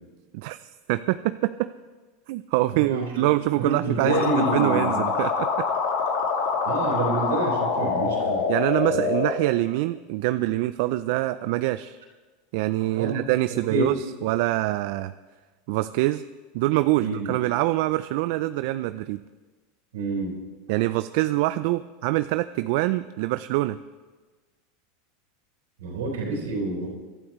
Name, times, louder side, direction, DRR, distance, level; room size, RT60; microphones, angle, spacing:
voice 1, 0.3-1.7 2.3-5.7 8.5-12.0 12.5-15.1 15.7-16.2 16.5-19.2 20.7-23.8, right 17 dB, 65° right, 12 dB, 0.4 m, -25 dB
voice 2, 2.7-3.3 3.6-5.0 6.6-8.4 8.8-9.0 12.9-13.2 13.7-13.9 17.0-17.3 19.9-20.3 25.8-26.9, right 2 dB, 85° right, -1 dB, 4.4 m, -28 dB
sound 1, 4.1-9.3, left 5 dB, 75° left, 2.9 m, -25 dB
26.0 x 12.0 x 3.2 m, 1.3 s
hypercardioid pair, 110°, 0 cm